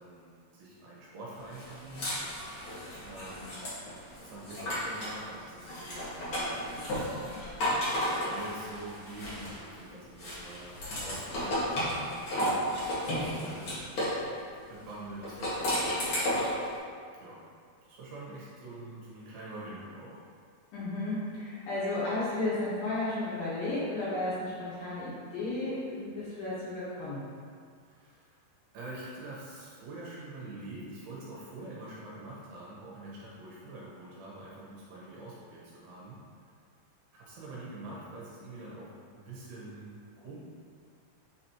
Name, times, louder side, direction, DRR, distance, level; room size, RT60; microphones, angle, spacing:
voice 1, 0.0-2.2 3.0-3.7 4.2-7.1 8.1-11.6 12.3-13.6 14.7-16.3 17.2-17.4 17.9-20.2 27.9-28.4 28.7-36.5 37.1-40.4, right 2 dB, 70° right, -7 dB, 2.7 m, -45 dB
sound 1, 1.5-5.2 5.6-9.8 10.2-14.2 15.2-16.6, equal, 90° left, 1.1 m, -33 dB
voice 2, 20.7-27.2, left 2 dB, 65° left, -10 dB, 2.4 m, -33 dB
8.5 x 4.2 x 2.9 m, 2.2 s
omnidirectional pair, 5.1 m